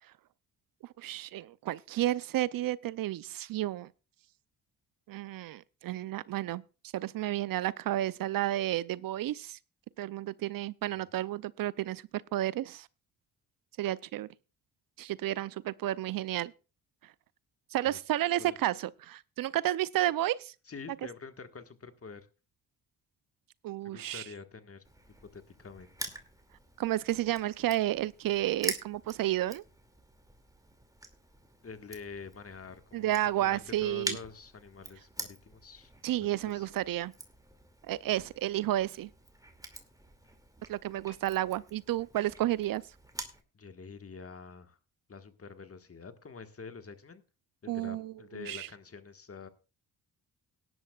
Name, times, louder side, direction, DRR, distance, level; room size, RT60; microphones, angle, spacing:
voice 1, 1.0-3.9 5.1-6.6 6.9-9.6 10.0-12.0 12.3-12.9 13.8-14.3 15.0-16.5 17.7-20.5 23.6-24.2 26.8-29.6 32.9-34.2 36.0-37.1 37.9-39.1 40.7-42.8 47.7-48.7, right 14 dB, 65° right, 0.5 m, -31 dB
voice 2, 20.6-22.3 23.8-24.9 25.2-26.1 31.6-35.9 36.2-36.3 36.5-36.7 43.5-44.8 45.1-47.2 47.6-49.5, left 5 dB, 40° left, 1.6 m, -47 dB
Crushing, 24.8-43.4, right 1 dB, 10° right, 2.4 m, -45 dB
17.5 x 11.0 x 2.4 m
supercardioid pair, 55°, 37 cm